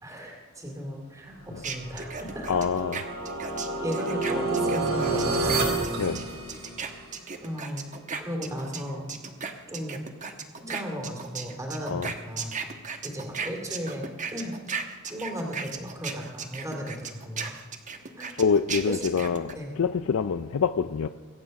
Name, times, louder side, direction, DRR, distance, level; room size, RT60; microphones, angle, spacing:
voice 1, 0.0-2.5 3.8-5.7 6.0-6.1 7.4-7.9 8.2-9.1 9.7-10.0 10.6-12.6 13.0-14.5 15.1-17.5 18.2-18.3 18.9-19.1 19.5-19.8, equal, 15° right, 2.3 m, -36 dB
sound 1, 1.6-8.8 9.1-19.5, right 5 dB, 35° right, 1.1 m, -36 dB
sound 2, 1.8-7.0, right 2 dB, 70° right, 2.5 m, -29 dB
voice 2, 2.5-3.0 6.0-6.2 11.9-12.1 18.4-21.1, left 6 dB, 65° left, 0.4 m, -25 dB
22.5 x 8.7 x 5.3 m
head